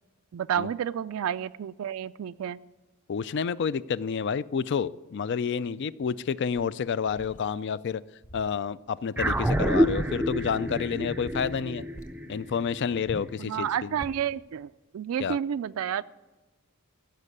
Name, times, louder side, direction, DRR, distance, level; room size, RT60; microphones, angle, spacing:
voice 1, 0.3-2.6 13.4-16.0, right 9 dB, 75° right, 12 dB, 0.3 m, -30 dB
voice 2, 3.1-8.0 8.3-11.8 12.3-13.9 15.2-15.4, left 6 dB, 55° left, 18 dB, 0.4 m, -29 dB
sound 1, 6.5-7.5 8.2-8.6 8.9-9.0 9.4-10.6 10.9-11.6 11.9-12.2 13.0-13.4 14.0-14.3, equal, 35° left, 1.1 m, -45 dB
sound 2, 9.2-13.8, equal, 5° right, 0.4 m, -28 dB
15.0 x 6.6 x 9.5 m, 1.2 s
head